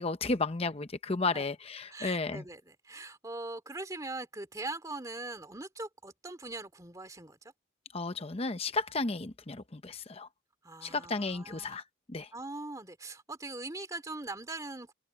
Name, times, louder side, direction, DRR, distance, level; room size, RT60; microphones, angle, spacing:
voice 1, 0.0-2.4 7.9-10.3 10.8-11.8 12.1-12.3, left 3 dB, 30° left, 0.7 m, -33 dB
voice 2, 1.9-7.5 10.6-11.8 12.3-14.9, right 2 dB, 15° right, 2.4 m, -41 dB
head